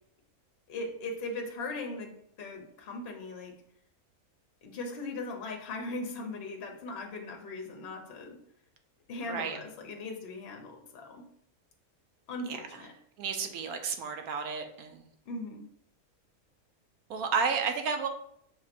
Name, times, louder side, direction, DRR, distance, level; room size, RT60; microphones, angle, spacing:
voice 1, 0.7-3.5 4.6-8.4 9.1-11.2 12.3-12.9 15.3-15.7, left 2 dB, 50° left, 2 dB, 0.9 m, -39 dB
voice 2, 9.2-9.6 12.5-12.6 13.2-15.1 17.1-18.1, right 5 dB, 80° right, 6 dB, 1.1 m, -32 dB
6.5 x 2.9 x 2.5 m, 0.70 s
omnidirectional pair, 1.6 m